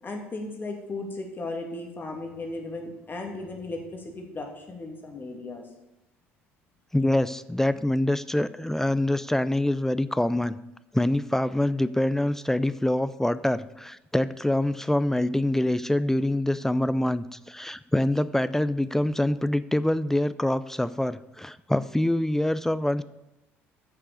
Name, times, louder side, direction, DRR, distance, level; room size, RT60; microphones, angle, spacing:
voice 1, 0.0-5.6, left 2 dB, 30° left, 2 dB, 2.4 m, -36 dB
voice 2, 6.9-10.6 10.9-23.0, left 1 dB, 5° left, 15 dB, 0.4 m, -25 dB
9.7 x 6.7 x 6.9 m, 0.93 s
figure-of-eight pair, 60°, 7 cm